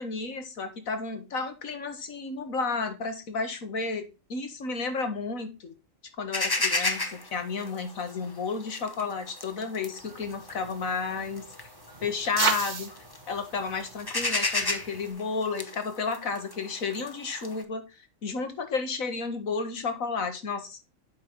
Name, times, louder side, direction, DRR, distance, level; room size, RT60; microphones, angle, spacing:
voice 1, 0.0-5.7 6.2-11.5 12.0-12.9 13.3-17.8 18.2-20.8, left 4 dB, 85° left, 7 dB, 2.0 m, -32 dB
sound 1, 6.3-12.5 12.9-13.4 13.7-17.6, left 3 dB, 20° left, 0.9 m, -32 dB
sound 2, 10.0-15.1, right 4 dB, 35° right, 1.1 m, -35 dB
8.5 x 6.2 x 3.1 m, 0.28 s
omnidirectional pair, 1.4 m